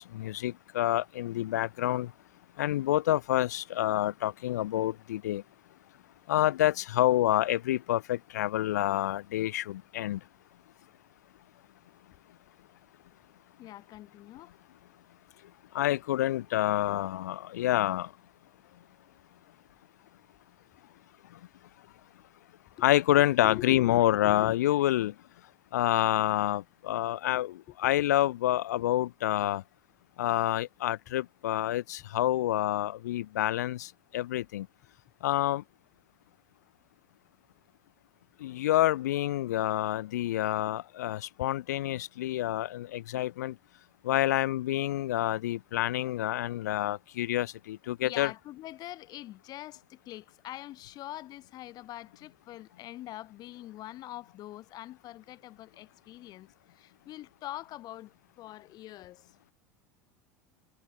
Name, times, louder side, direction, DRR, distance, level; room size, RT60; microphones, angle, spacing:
voice 1, 0.0-2.1 2.6-5.4 6.3-10.2 15.7-18.1 22.8-25.1 25.7-29.6 30.2-34.7 35.2-35.6 38.4-43.6 44.0-48.3, left 14 dB, 80° left, 0.4 m, -28 dB
voice 2, 13.6-14.5 23.2-24.6 27.7-28.1 43.1-43.2 48.0-59.3, left 15 dB, 45° left, 1.0 m, -43 dB
hypercardioid pair, 80°, 9 cm